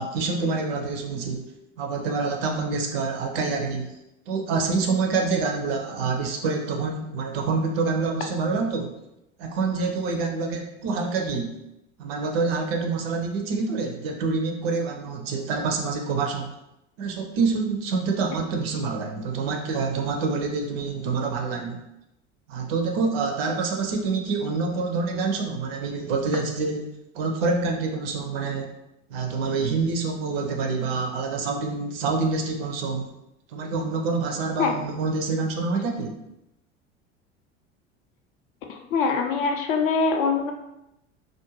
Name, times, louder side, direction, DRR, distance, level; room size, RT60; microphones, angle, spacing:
voice 1, 0.0-1.5 1.8-4.0 4.3-8.9 9.4-11.6 12.0-16.5 17.0-21.8 22.5-26.9 27.1-28.7 29.1-33.1 33.5-36.1, right 4 dB, 55° right, 3 dB, 0.5 m, -26 dB
voice 2, 38.7-40.5, left 4 dB, 50° left, 3 dB, 0.5 m, -23 dB
2.4 x 2.1 x 3.0 m, 0.88 s
figure-of-eight pair, 75°, 36 cm